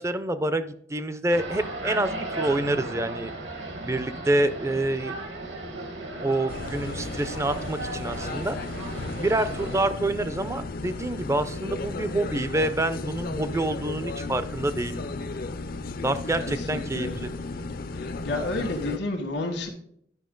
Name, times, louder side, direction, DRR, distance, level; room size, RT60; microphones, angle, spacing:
voice 1, 0.0-3.3 3.8-5.1 6.2-8.6 9.2-15.1 16.0-17.3, right 1 dB, 15° right, 12 dB, 0.5 m, -27 dB
sound 1, 1.3-9.9, right 2 dB, 70° right, 1.7 m, -36 dB
sound 2, 6.5-19.0, left 3 dB, 50° left, 0.5 m, -34 dB
voice 2, 17.9-19.7, left 2 dB, 85° left, 0 dB, 1.5 m, -30 dB
10.5 x 5.6 x 3.8 m, 0.66 s
head